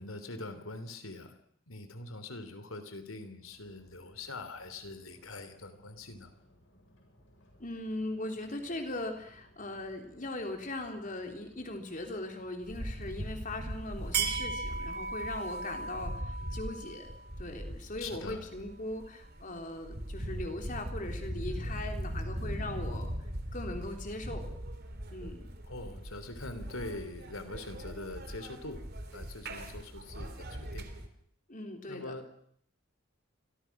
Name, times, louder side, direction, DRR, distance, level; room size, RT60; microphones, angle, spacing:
voice 1, 0.0-1.3 1.7-6.3 18.0-18.5 25.6-28.8 29.1-30.9 31.9-32.3, left 2 dB, 80° left, 10 dB, 3.5 m, -43 dB
sound 1, 3.4-15.7, equal, 65° left, 7.9 m, -62 dB
voice 2, 7.6-17.1 17.4-23.1 23.5-24.4 25.1-25.5 31.5-32.1, left 2 dB, 40° left, 4 dB, 3.9 m, -39 dB
sound 2, 12.6-31.1, right 2 dB, 50° right, 3.1 m, -39 dB
29.0 x 24.0 x 6.1 m, 0.67 s
head